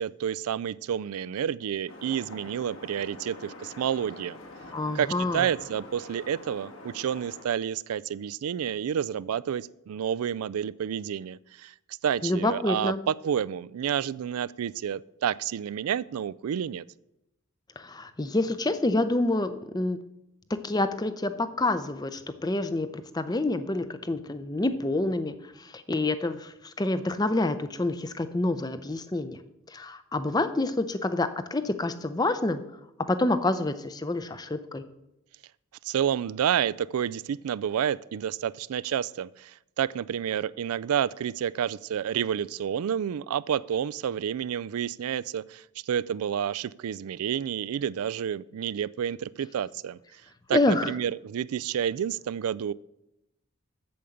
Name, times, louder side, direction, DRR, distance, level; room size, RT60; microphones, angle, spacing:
voice 1, 0.0-4.4 4.9-11.7 12.0-16.8 35.8-50.0 50.5-52.7, right 9 dB, 90° right, 20 dB, 0.3 m, -29 dB
sound 1, 1.9-7.4, left 2 dB, 65° left, 2.0 m, -45 dB
voice 2, 4.7-5.5 12.2-13.0 17.8-20.0 20.6-29.4 29.7-32.6 33.1-34.8 50.5-50.9, left 2 dB, 20° left, 11 dB, 0.6 m, -27 dB
8.6 x 7.0 x 7.8 m, 0.87 s
head